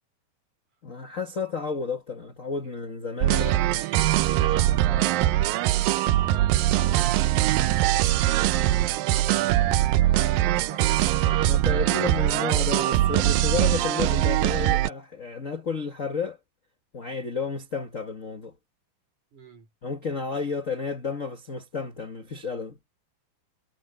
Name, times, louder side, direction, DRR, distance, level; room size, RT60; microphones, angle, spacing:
voice 1, 0.8-3.8 11.5-16.4 16.9-18.5 19.8-22.8, left 5 dB, 80° left, 0.7 m, -32 dB
sound 1, 3.2-14.9, right 14 dB, 85° right, 2.5 m, -22 dB
voice 2, 3.3-5.3 6.3-7.2 7.6-10.9 11.2-12.5 19.3-19.7, right 3 dB, 60° right, 6.5 m, -45 dB
omnidirectional pair, 3.9 m